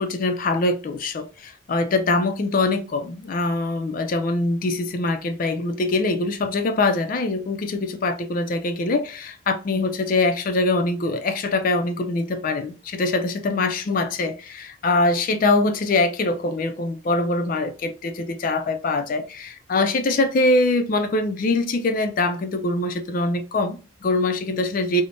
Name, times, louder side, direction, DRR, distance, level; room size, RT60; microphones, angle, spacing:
voice 1, 0.0-25.0, left 2 dB, 40° left, 0.3 m, -23 dB
3.2 x 2.0 x 2.5 m
head